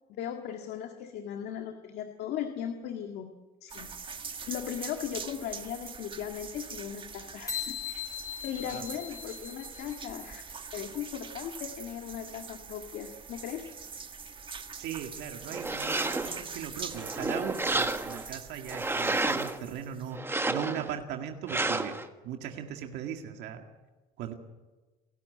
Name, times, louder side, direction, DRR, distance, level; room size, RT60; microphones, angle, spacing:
voice 1, 0.1-3.3 3.6-3.9 4.5-8.0 8.4-10.5 10.7-13.7, left 9 dB, 75° left, 5 dB, 1.9 m, -38 dB
sound 1, 3.7-20.2, right 5 dB, 30° right, 1.6 m, -43 dB
sound 2, 7.5-10.1, left 8 dB, 20° left, 5.8 m, -39 dB
voice 2, 14.8-22.0 22.2-23.7 24.2-24.3, right 9 dB, 85° right, 4 dB, 2.1 m, -38 dB
sound 3, 15.5-16.4 16.9-18.3 18.7-19.6 20.1-20.9 21.5-22.1, right 2 dB, 15° right, 1.5 m, -30 dB
29.0 x 13.0 x 9.5 m, 1.2 s
cardioid pair, 110°, 17 cm